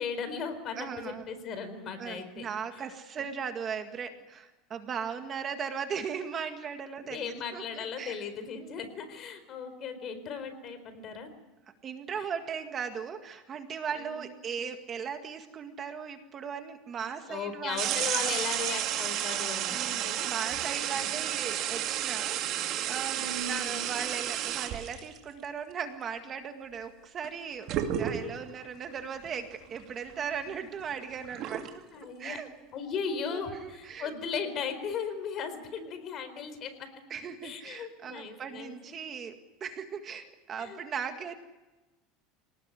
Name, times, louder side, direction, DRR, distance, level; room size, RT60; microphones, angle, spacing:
voice 1, 0.0-2.4 3.2-3.3 7.1-11.3 14.0-14.4 17.3-20.3 20.9-21.1 23.2-23.8 31.9-32.4 32.7-36.9 37.4-38.9 40.6-40.8, left 6 dB, 40° left, 9 dB, 4.3 m, -37 dB
voice 2, 0.8-1.3 2.0-8.2 8.6-8.8 11.8-18.1 19.7-31.7 32.2-32.5 33.3-34.1 37.1-41.3, right 7 dB, 30° right, 7 dB, 1.9 m, -38 dB
sound 1, 17.8-25.2 27.2-27.3 27.7-28.5 29.2-29.3 29.7-31.7, right 11 dB, 45° right, 2.3 m, -32 dB
26.5 x 19.0 x 10.0 m, 1.1 s
supercardioid pair, 150°, 0 cm